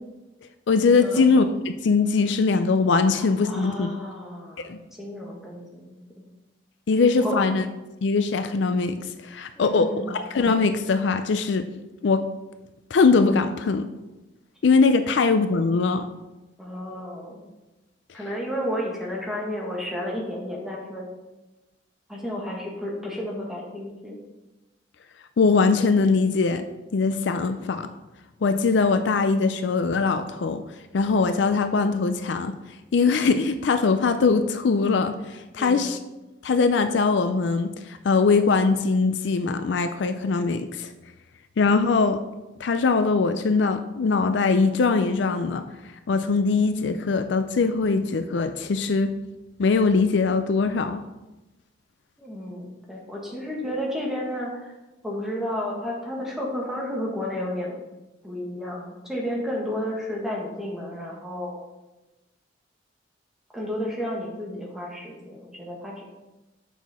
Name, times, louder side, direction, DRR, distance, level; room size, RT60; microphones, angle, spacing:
voice 1, 0.7-3.9 4.6-4.8 6.9-7.6 8.0-11.7 12.0-12.3 12.9-13.9 14.6-16.1 25.4-26.7 26.9-27.9 28.4-30.6 30.9-32.6 32.9-36.0 36.4-40.9 41.6-42.2 42.6-45.7 46.1-49.1 49.6-51.0, left 4 dB, 70° left, 10 dB, 0.4 m, -21 dB
voice 2, 3.1-4.6 4.9-5.9 7.1-7.4 9.6-10.2 16.6-17.4 18.1-21.0 22.1-24.2 35.6-35.8 52.2-54.7 55.0-57.8 58.2-61.6 63.5-66.0, equal, ahead, -3 dB, 1.5 m, -32 dB
7.2 x 5.7 x 4.2 m, 1.0 s
head